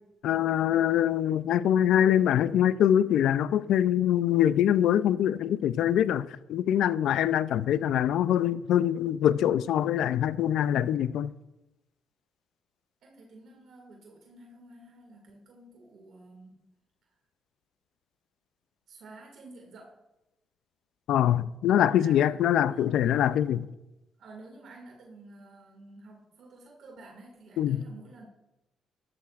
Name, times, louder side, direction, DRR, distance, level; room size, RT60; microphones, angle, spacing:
voice 1, 0.2-11.3 21.1-23.7 27.6-27.8, left 10 dB, 80° left, 0.4 m, -24 dB
voice 2, 13.0-16.7 17.0-17.1 18.9-20.0 21.9-23.3 24.2-28.3, right 2 dB, 70° right, 2.2 m, -51 dB
13.0 x 11.5 x 2.5 m
cardioid pair, 90°, 0 cm